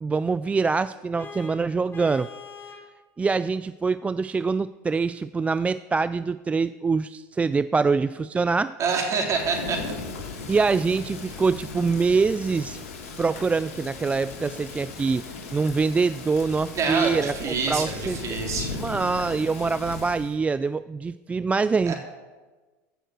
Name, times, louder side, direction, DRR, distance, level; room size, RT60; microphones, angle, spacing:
voice 1, 0.0-2.3 3.2-8.7 10.5-12.8 13.2-15.2 15.5-18.2 18.8-21.9, right 4 dB, 15° right, 15 dB, 0.3 m, -24 dB
Vehicle horn car horn honking, 1.2-2.9, left 5 dB, 30° left, 1.9 m, -42 dB
voice 2, 8.8-9.8 16.7-18.8 21.9-22.0, right 5 dB, 40° right, 2 dB, 3.6 m, -26 dB
Thunder / Rain, 9.3-20.4, left 4 dB, 85° left, 2.5 m, -37 dB
15.0 x 6.5 x 7.8 m, 1.3 s
hypercardioid pair, 90°, 8 cm